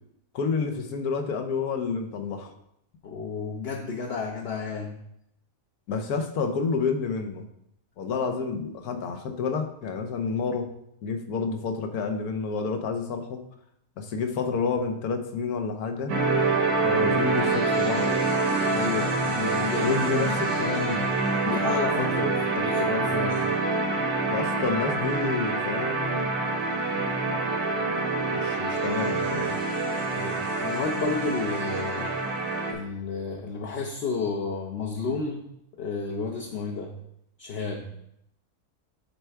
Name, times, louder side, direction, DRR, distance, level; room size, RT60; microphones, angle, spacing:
voice 1, 0.3-2.5 5.9-7.4 8.0-10.7 11.0-13.4 14.0-16.1 16.8-18.1 19.8-21.1 24.3-26.1 28.3-29.6, left 5 dB, 80° left, 6 dB, 1.3 m, -29 dB
voice 2, 3.0-4.9 5.9-6.0 18.7-20.4 21.4-22.3 22.6-23.5 30.1-32.1 32.7-35.4 35.8-36.9 37.4-37.9, left 4 dB, 55° left, 1 dB, 0.8 m, -31 dB
sound 1, 16.1-32.7, right 3 dB, 75° right, 1.5 m, -26 dB
8.6 x 3.4 x 4.6 m, 0.77 s
omnidirectional pair, 1.6 m